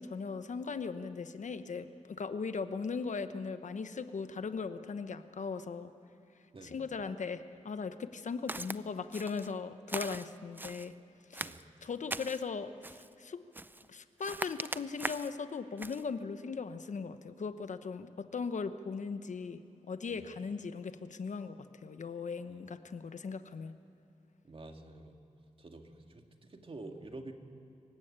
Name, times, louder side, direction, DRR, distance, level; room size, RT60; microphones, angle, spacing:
voice 1, 0.0-5.9 6.6-10.9 11.3-11.5 11.8-13.4 13.9-19.6 19.9-21.6 21.8-23.7, left 5 dB, 70° left, 10 dB, 1.0 m, -38 dB
Walk footsteps, 8.5-8.8 9.1-9.5 9.9-10.9 11.3-12.4 12.8-13.1 13.5-13.9 14.2-15.4 15.8-16.0, right 2 dB, 15° right, 0.5 m, -40 dB
voice 2, 24.4-25.2 25.6-27.3, right 2 dB, 45° right, 4 dB, 2.0 m, -48 dB
26.0 x 16.0 x 8.8 m, 2.8 s
wide cardioid pair, 95°, 13 cm